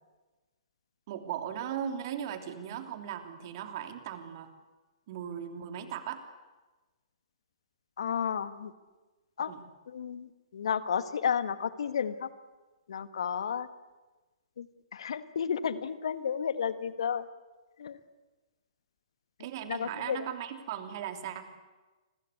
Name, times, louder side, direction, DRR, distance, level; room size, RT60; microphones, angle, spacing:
voice 1, 1.1-4.5 5.1-6.2 9.4-9.6 19.4-21.5, right 9 dB, 45° right, 7 dB, 3.2 m, -38 dB
voice 2, 8.0-8.7 9.4-9.5 9.9-12.3 12.9-13.7 14.6-14.7 14.9-17.3 17.8-18.0 19.7-20.2, left 7 dB, 65° left, 13 dB, 1.5 m, -32 dB
29.5 x 21.5 x 8.4 m, 1.2 s
figure-of-eight pair, 120°, 3 cm